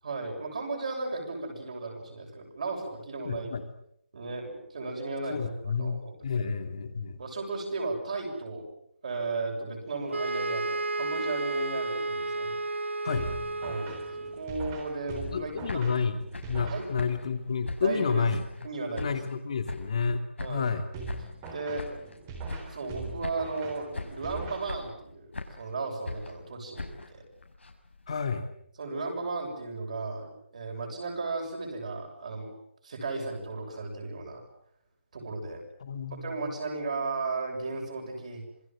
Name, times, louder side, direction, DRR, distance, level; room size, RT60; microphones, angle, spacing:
voice 1, 0.0-3.5 4.1-6.5 7.1-8.6 9.0-12.5 13.6-13.9 14.3-16.0 16.6-16.9 17.8-18.3 18.6-19.1 20.4-20.8 21.5-21.9 22.7-27.2 28.8-32.5 32.8-34.5 35.1-35.6 36.2-38.4, right 3 dB, 40° right, 1 dB, 7.4 m, -35 dB
voice 2, 3.2-3.6 5.3-7.2 13.0-13.3 15.3-16.2 16.5-18.4 19.0-20.2 20.5-20.9 28.1-28.5 35.8-36.5, left 5 dB, 30° left, 8 dB, 2.6 m, -30 dB
sound 1, 10.1-14.5, right 2 dB, 85° right, 1.2 m, -32 dB
sound 2, 13.1-17.3 20.9-25.1, right 3 dB, 15° right, 3.6 m, -41 dB
sound 3, 15.4-18.7 18.9-20.1 20.4-22.2 22.5-23.0 23.2-23.7 23.9-24.4 24.7-25.7 26.1-28.2, left 3 dB, 85° left, 6.3 m, -41 dB
27.5 x 22.0 x 7.7 m, 0.73 s
hypercardioid pair, 175°, 6 cm